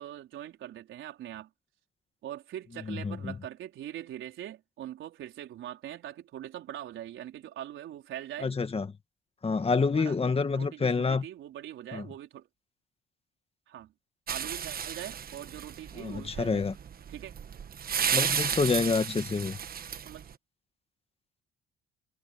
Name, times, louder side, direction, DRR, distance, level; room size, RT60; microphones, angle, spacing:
voice 1, 0.0-1.5 2.2-8.5 9.9-10.2 10.5-12.5 13.7-13.9 14.3-16.7 17.1-17.3 19.9-20.3, right 12 dB, 80° right, 4.5 m, -42 dB
voice 2, 2.9-3.3 8.4-8.9 9.4-11.3 11.9-12.1 16.0-16.7 18.1-19.6, left 4 dB, 30° left, 2.0 m, -28 dB
sound 1, 14.3-20.3, right 8 dB, 50° right, 1.2 m, -33 dB
cardioid pair, 90°, 20 cm